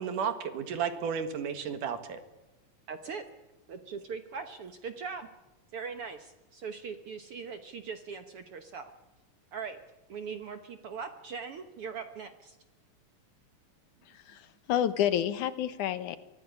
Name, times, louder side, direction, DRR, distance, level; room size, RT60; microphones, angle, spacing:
voice 1, 0.0-2.2, right 7 dB, 75° right, 10 dB, 3.3 m, -33 dB
voice 2, 2.9-3.2 3.7-5.3 5.7-8.8 9.5-9.8 10.1-12.6, right 5 dB, 60° right, 9 dB, 1.6 m, -40 dB
voice 3, 14.1-16.2, left 10 dB, 70° left, 14 dB, 2.4 m, -29 dB
24.0 x 15.0 x 9.7 m, 1.1 s
omnidirectional pair, 3.8 m